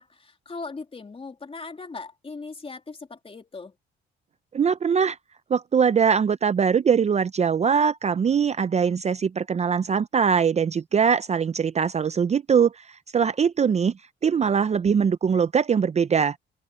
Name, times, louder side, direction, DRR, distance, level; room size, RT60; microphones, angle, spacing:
voice 1, 0.0-3.7, left 4 dB, 30° left, 3.2 m, -39 dB
voice 2, 4.5-5.2 5.5-13.9 14.2-16.4, right 6 dB, 35° right, 0.5 m, -22 dB
cardioid pair, 90°, 20 cm